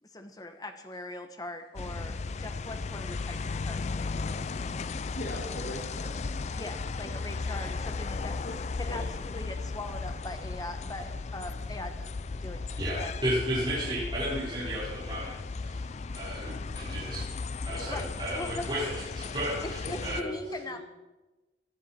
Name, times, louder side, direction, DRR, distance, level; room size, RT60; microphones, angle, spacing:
voice 1, 0.0-4.3 6.5-8.4 8.8-13.2 17.9-18.1 18.3-18.7 19.6-20.8, left 2 dB, 20° left, 7 dB, 1.1 m, -41 dB
sound 1, 1.8-20.2, left 4 dB, 35° left, 0.4 m, -36 dB
voice 2, 5.1-6.2 6.5-6.7 7.0-7.2 8.4-8.5 8.9-9.0 19.8-19.9 20.2-20.8, left 1 dB, 60° left, -1 dB, 2.1 m, -40 dB
voice 3, 12.8-15.3 15.6-15.8 16.1-17.3 17.6-20.2, equal, 25° right, -10 dB, 4.7 m, -33 dB
18.0 x 12.0 x 4.4 m, 1.1 s
head